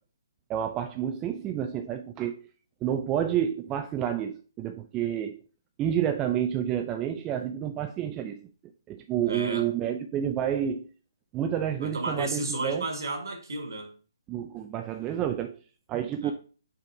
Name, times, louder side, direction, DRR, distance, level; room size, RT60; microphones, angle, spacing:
voice 1, 0.5-2.5 2.8-5.4 5.8-8.5 8.9-10.9 11.3-12.9 14.3-15.6 15.9-16.3, right 10 dB, 20° right, 0.4 m, -29 dB
voice 2, 9.2-9.7 11.8-13.9 16.2-16.3, right 2 dB, 65° right, 1.7 m, -33 dB
5.6 x 3.6 x 4.7 m
figure-of-eight pair, 135°, 2 cm